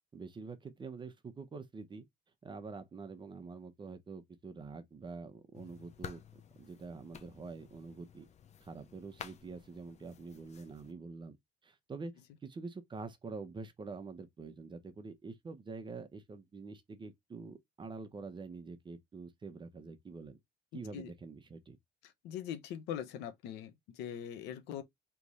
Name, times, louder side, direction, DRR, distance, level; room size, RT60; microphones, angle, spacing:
voice 1, 0.1-2.1 2.4-6.2 6.6-8.3 8.6-11.4 11.6-12.1 12.4-20.4 20.7-21.8, right 4 dB, 30° right, 0.8 m, -46 dB
sound 1, 5.5-10.9, left 8 dB, 40° left, 0.7 m, -52 dB
voice 2, 20.7-21.1 22.2-24.8, left 9 dB, 90° left, 0.9 m, -42 dB
3.4 x 3.1 x 4.1 m
cardioid pair, 110°, 17 cm